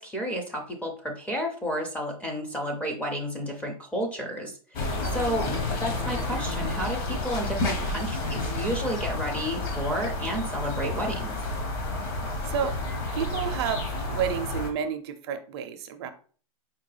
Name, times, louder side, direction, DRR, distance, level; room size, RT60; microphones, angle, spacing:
voice 1, 0.0-5.5 5.8-11.4, equal, 5° left, 1 dB, 0.4 m, -31 dB
sound 1, 4.7-14.7, left 2 dB, 40° left, 0.9 m, -30 dB
voice 2, 5.0-5.6 12.4-12.7 13.1-16.1, right 8 dB, 45° right, 8 dB, 0.5 m, -31 dB
4.4 x 2.1 x 3.2 m, 0.43 s
hypercardioid pair, 145°, 19 cm